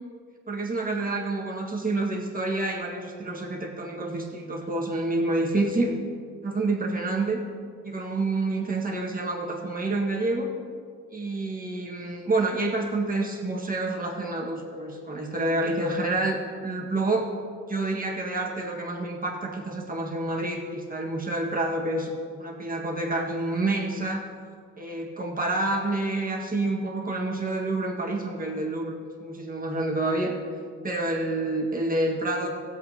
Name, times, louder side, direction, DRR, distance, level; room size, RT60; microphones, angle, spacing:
voice 1, 0.5-6.0 6.4-7.4 7.8-10.5 11.1-17.3 17.7-22.1 22.4-24.3 24.8-29.0 29.2-30.3 30.8-32.5, right 2 dB, 30° right, -1 dB, 1.8 m, -28 dB
16.0 x 7.9 x 2.9 m, 2.1 s
cardioid pair, 90°, 30 cm